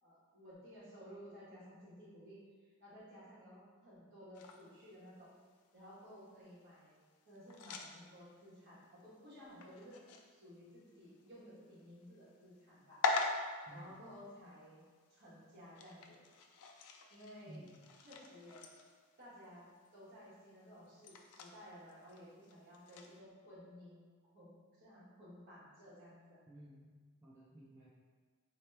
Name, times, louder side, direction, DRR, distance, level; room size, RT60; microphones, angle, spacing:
voice 1, 0.0-5.3 5.7-7.0 7.2-10.0 10.3-13.4 13.7-14.8 15.1-16.2 17.1-17.7 18.0-18.6 19.2-24.0 24.3-26.4, equal, 50° right, -9 dB, 1.5 m, -56 dB
sound 1, 4.3-23.2, left 3 dB, 80° left, 0.4 m, -45 dB
voice 2, 13.7-14.1 17.5-17.8 26.5-27.9, right 1 dB, 15° right, -8 dB, 0.4 m, -56 dB
4.1 x 2.9 x 3.3 m, 1.5 s
head